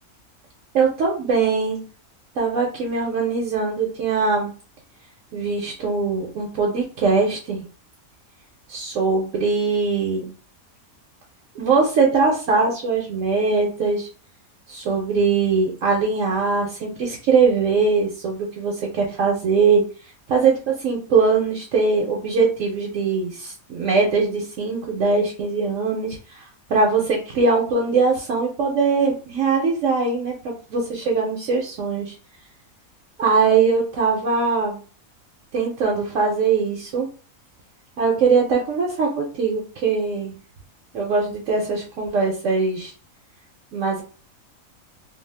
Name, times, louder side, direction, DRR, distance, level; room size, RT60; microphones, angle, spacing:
voice 1, 0.7-1.9 2.4-4.5 5.3-7.6 8.7-10.3 11.6-14.1 14.7-19.8 20.3-32.1 33.2-34.8 35.5-37.1 38.0-40.3 40.9-42.9 43.7-44.0, right 4 dB, 70° right, -1 dB, 0.9 m, -21 dB
2.5 x 2.1 x 3.2 m, 0.38 s
omnidirectional pair, 1.5 m